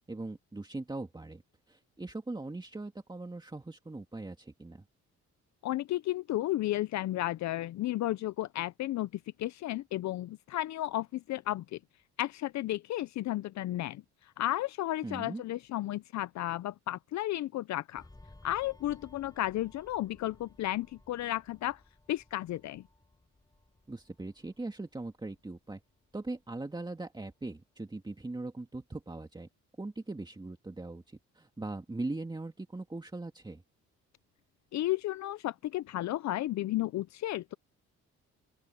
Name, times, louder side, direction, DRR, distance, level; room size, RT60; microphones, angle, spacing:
voice 1, 0.1-1.4 1.7-4.8 15.0-15.4 23.9-25.8 26.1-29.5 29.8-33.6, right 2 dB, 15° right, 2.3 m, -40 dB
voice 2, 5.6-9.1 9.4-11.8 12.2-18.0 18.4-21.8 22.1-22.8 34.7-37.5, left 15 dB, 65° left, 0.6 m, -33 dB
sound 1, 17.9-27.0 27.3-27.6, left 2 dB, 15° left, 6.5 m, -59 dB
open air
cardioid pair, 90°, 30 cm